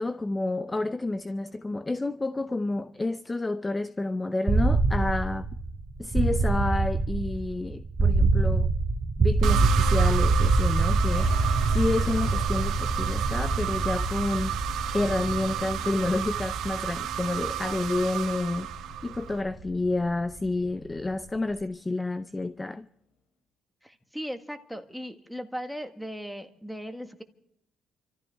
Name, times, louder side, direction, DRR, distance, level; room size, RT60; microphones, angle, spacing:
voice 1, 0.0-5.5 6.0-8.7 9.2-11.3 11.7-14.6 14.9-18.7 19.0-22.9, left 2 dB, 15° left, 0.6 m, -29 dB
sound 1, 4.5-20.3, right 3 dB, 30° right, 1.6 m, -26 dB
sound 2, 9.4-19.4, right 11 dB, 80° right, 1.0 m, -33 dB
sound 3, 10.8-22.1, left 4 dB, 75° left, 3.2 m, -43 dB
voice 2, 23.8-27.2, equal, ahead, 1.7 m, -37 dB
29.0 x 14.0 x 3.5 m
cardioid pair, 105°, 0 cm